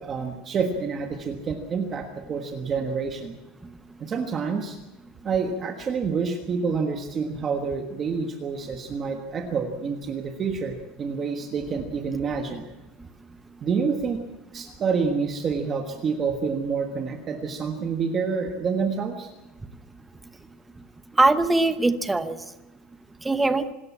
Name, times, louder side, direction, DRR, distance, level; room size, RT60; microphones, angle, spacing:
voice 1, 0.0-3.4 4.0-4.8 5.2-12.7 13.6-14.2 14.5-19.3, right 5 dB, 25° right, 4 dB, 1.4 m, -28 dB
voice 2, 21.1-22.5 23.2-23.7, right 2 dB, 5° right, 10 dB, 0.9 m, -22 dB
25.5 x 13.0 x 8.5 m, 1.1 s
cardioid pair, 170°, 0 cm